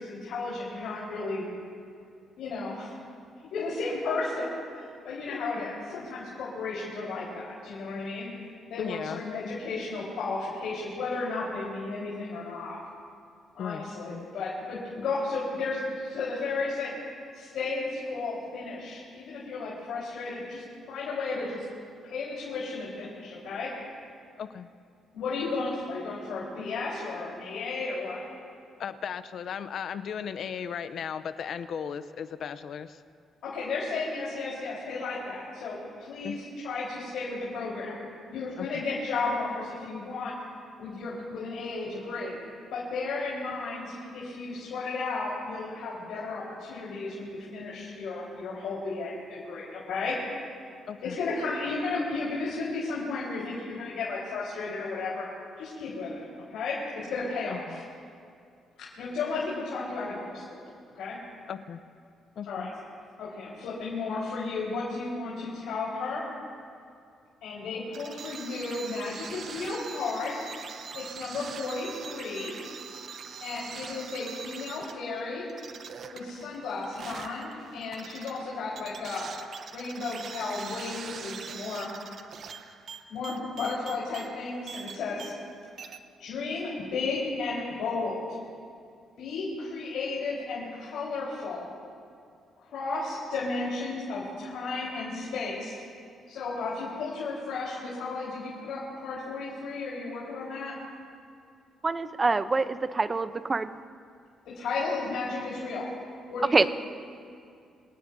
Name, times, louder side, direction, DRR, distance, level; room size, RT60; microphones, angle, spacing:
voice 1, 0.0-1.5 2.4-2.9 3.5-8.3 8.7-12.8 13.5-16.9 17.3-21.6 22.0-23.7 25.1-28.2 33.4-37.9 38.3-40.3 40.8-42.3 42.7-50.2 51.0-55.2 55.6-56.2 56.5-57.8 59.0-60.6 60.9-61.2 62.5-62.7 63.2-66.3 67.4-70.4 70.9-72.6 73.4-75.4 76.1-79.3 79.7-81.9 83.1-85.4 86.2-88.4 89.2-91.7 92.6-95.8 96.3-100.8 104.5-106.0 106.3-106.7, left 3 dB, 80° left, -7 dB, 4.2 m, -33 dB
voice 2, 8.8-9.2 13.6-14.3 24.4-24.7 28.8-33.0 36.2-36.4 38.6-38.8 50.9-51.2 57.5-57.8 61.5-61.8 62.4-62.7, left 7 dB, 65° left, 12 dB, 0.6 m, -36 dB
sound 1, 67.9-85.5 85.8-86.0, right 6 dB, 60° right, 0.9 m, -43 dB
voice 3, 101.8-103.8 106.5-106.7, right 3 dB, 30° right, 12 dB, 0.7 m, -25 dB
26.0 x 18.0 x 2.7 m, 2.4 s
cardioid pair, 90°, 0 cm